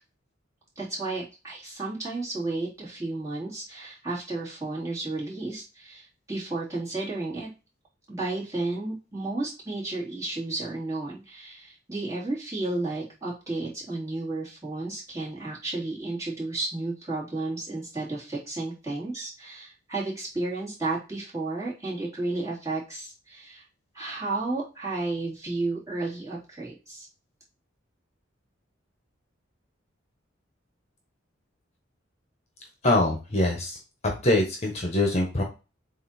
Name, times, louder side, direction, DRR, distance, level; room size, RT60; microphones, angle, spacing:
voice 1, 0.7-7.5 8.1-23.6 23.9-27.1, right 2 dB, 15° right, -7 dB, 3.2 m, -32 dB
voice 2, 32.8-33.8 34.2-35.4, left 1 dB, 35° left, 1 dB, 1.3 m, -23 dB
7.6 x 3.0 x 4.4 m, 0.30 s
head